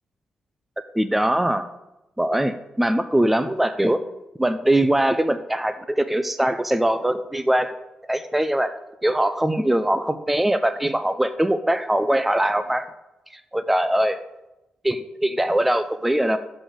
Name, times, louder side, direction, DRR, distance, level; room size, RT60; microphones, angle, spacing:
voice 1, 0.9-1.7 2.2-4.0 4.4-7.7 8.1-8.7 9.0-12.9 13.3-14.2 14.8-16.4, right 1 dB, 5° right, 11 dB, 0.4 m, -22 dB
6.8 x 4.0 x 6.2 m, 0.96 s
wide cardioid pair, 135°, 3 cm